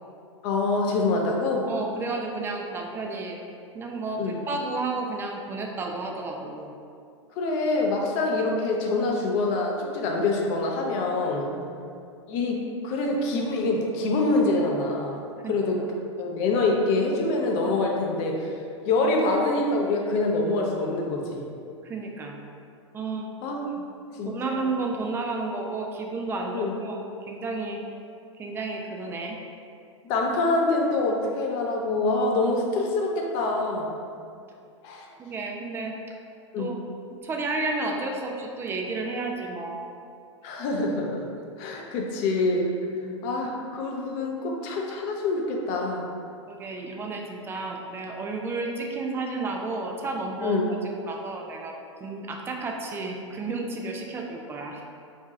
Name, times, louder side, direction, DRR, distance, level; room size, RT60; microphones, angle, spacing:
voice 1, 0.4-1.7 4.2-4.4 7.4-11.5 12.3-15.8 16.2-18.5 18.9-21.4 23.4-23.6 24.1-24.5 26.5-26.7 30.0-34.0 34.8-35.1 36.5-36.8 40.4-41.3 41.6-42.7 43.2-46.1 50.4-50.6, left 2 dB, 45° left, 0 dB, 0.6 m, -25 dB
voice 2, 1.7-3.4 3.7-6.7 11.6-11.8 15.4-15.6 21.8-22.4 22.9-23.3 23.8-23.9 24.3-27.8 28.4-29.4 34.1-34.2 35.2-36.2 36.6-36.8 37.2-39.8 42.9-43.2 46.5-50.6 50.8-51.7 52.0-54.8, right 3 dB, 15° right, 1 dB, 0.4 m, -32 dB
4.6 x 2.7 x 2.2 m, 2.4 s
hypercardioid pair, 100°, 16 cm